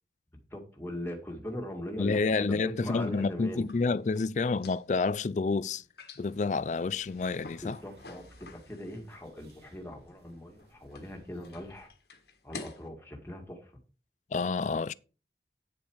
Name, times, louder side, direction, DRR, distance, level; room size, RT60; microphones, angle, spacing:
voice 1, 0.5-3.7 7.6-11.9 12.4-13.7, equal, 15° left, 1.9 m, -40 dB
voice 2, 2.0-5.8 6.2-7.8 14.3-14.9, left 4 dB, 40° left, 0.3 m, -29 dB
sound 1, 3.5-12.9, left 4 dB, 70° left, 1.5 m, -51 dB
sound 2, 6.2-11.9, right 1 dB, 65° right, 2.4 m, -59 dB
9.2 x 7.1 x 4.7 m
head